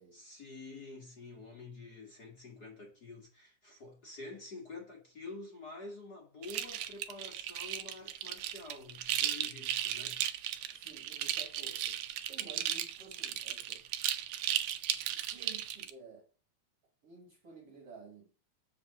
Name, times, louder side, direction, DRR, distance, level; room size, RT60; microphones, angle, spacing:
voice 1, 0.1-10.2, left 3 dB, 40° left, 1.6 m, -48 dB
sound 1, 6.4-15.9, right 11 dB, 80° right, 1.7 m, -35 dB
voice 2, 10.7-13.8 15.1-16.3 17.0-18.3, right 4 dB, 50° right, 2.2 m, -53 dB
7.9 x 4.1 x 6.5 m
omnidirectional pair, 4.1 m